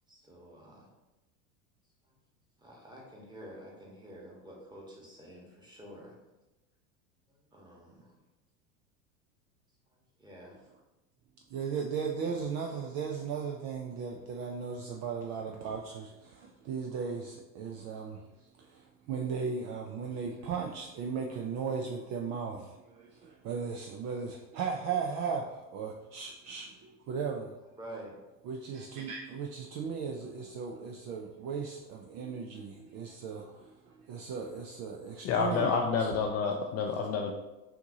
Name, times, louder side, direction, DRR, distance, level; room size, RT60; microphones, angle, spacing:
voice 1, 0.1-0.9 2.6-6.2 7.3-8.1 10.2-10.6 27.8-28.2, right 1 dB, 10° right, -2 dB, 1.2 m, -49 dB
voice 2, 11.5-18.2 18.6-27.5 28.4-35.7 36.0-36.1, right 6 dB, 40° right, 1 dB, 0.4 m, -37 dB
voice 3, 35.2-37.3, left 5 dB, 35° left, 2 dB, 0.4 m, -29 dB
5.7 x 2.7 x 2.8 m, 1.0 s
hypercardioid pair, 90°, 45 cm